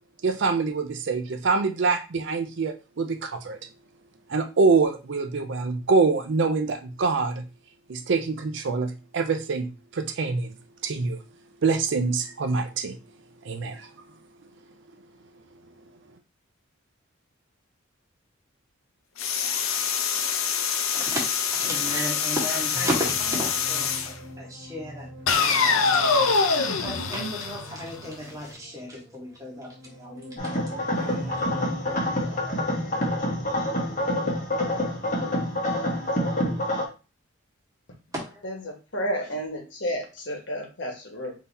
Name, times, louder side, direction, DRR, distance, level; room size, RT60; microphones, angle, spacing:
voice 1, 0.2-3.6 4.3-7.4 7.9-10.5 10.8-11.2 11.6-13.0 13.4-13.9, right 4 dB, 60° right, 7 dB, 0.4 m, -25 dB
sound 1, 19.2-24.1 25.3-28.2, left 5 dB, 85° left, 0.6 m, -25 dB
voice 2, 20.9-23.9 24.4-26.3 26.8-30.7 31.4-31.5 38.1-38.4, equal, 15° right, -4 dB, 1.5 m, -34 dB
sound 2, 22.7-35.5, equal, ahead, 1.5 m, -43 dB
sound 3, 30.4-36.8, left 1 dB, 35° left, 1.2 m, -27 dB
voice 3, 38.4-41.3, equal, 60° left, 1 dB, 1.3 m, -31 dB
3.7 x 2.8 x 4.1 m, 0.32 s
head